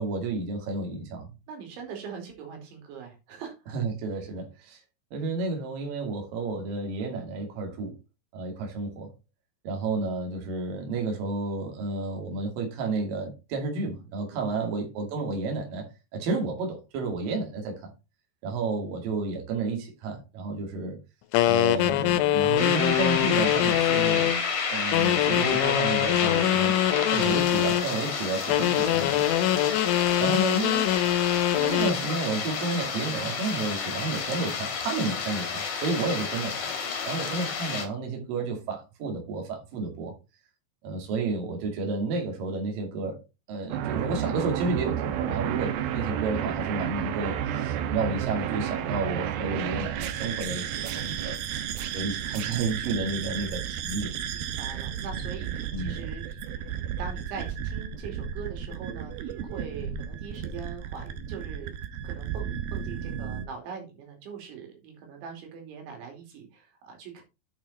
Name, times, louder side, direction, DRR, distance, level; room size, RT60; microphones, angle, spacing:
voice 1, 0.0-1.3 3.7-4.8 5.1-7.9 8.3-9.1 9.6-17.9 18.4-21.0 21.4-24.3 24.7-26.8 27.1-29.3 30.2-30.9 31.6-36.6 37.0-40.1 40.8-43.2 43.5-51.4 51.9-54.1 55.7-55.9, right 3 dB, 55° right, 3.8 m, -31 dB
voice 2, 1.5-3.5 14.3-14.7 29.1-29.5 54.3-61.8 62.0-67.2, right 6 dB, 90° right, 5.0 m, -42 dB
sound 1, 21.3-24.4 24.9-27.9 28.5-32.0, left 12 dB, 90° left, 3.1 m, -24 dB
sound 2, 22.6-37.8, left 5 dB, 55° left, 3.6 m, -30 dB
sound 3, 43.7-63.5, right 9 dB, 70° right, 2.5 m, -32 dB
8.8 x 6.5 x 4.1 m
omnidirectional pair, 5.1 m